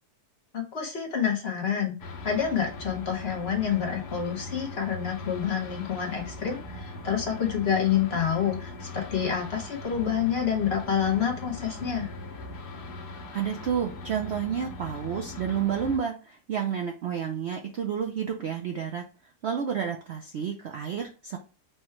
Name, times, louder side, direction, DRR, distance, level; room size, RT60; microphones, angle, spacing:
voice 1, 0.5-12.1, left 8 dB, 45° left, 1 dB, 1.0 m, -28 dB
sound 1, 2.0-16.0, left 2 dB, 80° left, 1.4 m, -40 dB
voice 2, 13.3-19.0 19.4-21.4, right 8 dB, 65° right, 3 dB, 0.6 m, -30 dB
4.5 x 2.2 x 4.4 m, 0.35 s
omnidirectional pair, 1.7 m